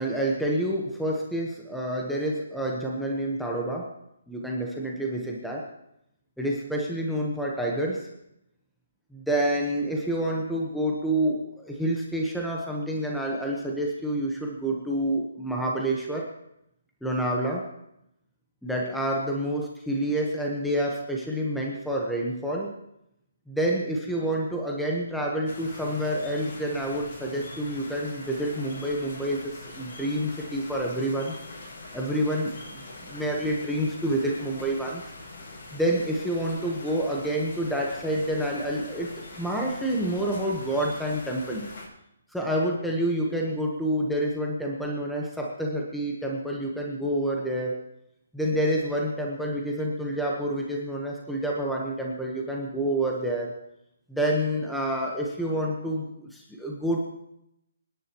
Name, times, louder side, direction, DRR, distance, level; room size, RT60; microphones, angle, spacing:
voice 1, 0.0-3.9 4.3-5.7 6.4-8.1 9.1-16.3 17.0-17.7 18.6-22.7 23.5-31.4 31.9-35.0 35.7-39.1 39.4-41.7 42.3-47.8 48.3-53.5 54.1-57.0, right 1 dB, ahead, -2 dB, 1.2 m, -28 dB
sound 1, 25.5-41.9, left 2 dB, 55° left, 6.5 m, -43 dB
27.0 x 10.5 x 3.0 m, 0.81 s
hypercardioid pair, 165°, 0 cm